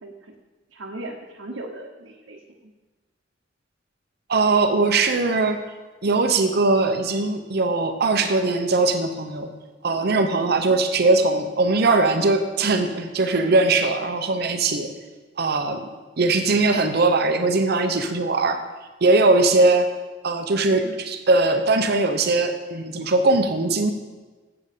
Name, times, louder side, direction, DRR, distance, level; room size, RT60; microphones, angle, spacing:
voice 1, 0.0-0.3 0.7-2.4 20.8-21.0, right 1 dB, 85° right, -1 dB, 1.0 m, -37 dB
voice 2, 4.3-5.6 6.0-9.5 9.8-14.9 15.4-15.8 16.2-18.6 19.0-19.9 20.2-23.9, right 3 dB, 55° right, 7 dB, 0.7 m, -20 dB
7.8 x 7.6 x 6.7 m, 1.3 s
head